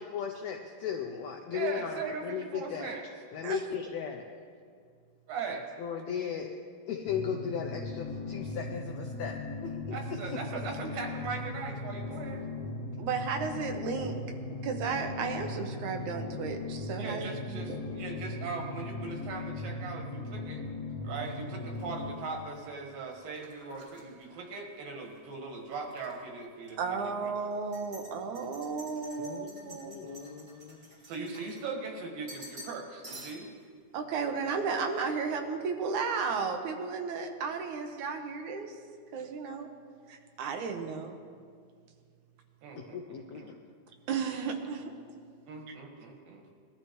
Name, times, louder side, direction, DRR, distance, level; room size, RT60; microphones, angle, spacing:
voice 1, 0.0-2.9 3.3-4.2 5.5-6.5 6.9-9.4 9.6-10.0 10.3-10.4 29.2-30.9 42.8-43.6, left 8 dB, 80° left, 3 dB, 1.5 m, -37 dB
voice 2, 1.5-3.0 5.3-5.6 9.9-12.5 17.0-20.6 21.0-27.3 31.1-33.5 42.6-43.0 43.4-43.5 45.5-46.4, right 4 dB, 90° right, 1 dB, 3.4 m, -39 dB
sound 1, 7.1-22.1, left 2 dB, 65° left, 2.4 m, -38 dB
voice 3, 13.0-14.2 14.6-17.8 26.8-30.2 33.9-38.8 39.1-39.7 40.1-41.2 44.1-44.9 45.7-45.8, right 5 dB, 70° right, 4 dB, 2.2 m, -34 dB
sound 2, 21.2-25.2 25.5-26.2 26.6-26.7 27.5-31.9 32.3-32.8 33.0-33.6, equal, 25° right, 1.9 m, -51 dB
20.0 x 12.5 x 3.1 m, 2.1 s
omnidirectional pair, 3.9 m